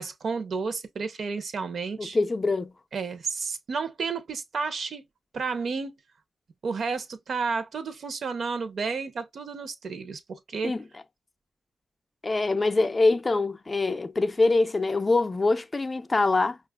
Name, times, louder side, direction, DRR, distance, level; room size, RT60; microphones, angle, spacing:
voice 1, 0.0-2.2 2.9-5.0 5.3-5.9 6.6-10.8, right 4 dB, 70° right, 0.7 m, -31 dB
voice 2, 2.0-2.7 10.6-10.8 12.2-16.6, left 3 dB, 30° left, 0.4 m, -24 dB
5.4 x 2.4 x 2.2 m
wide cardioid pair, 105°, 0 cm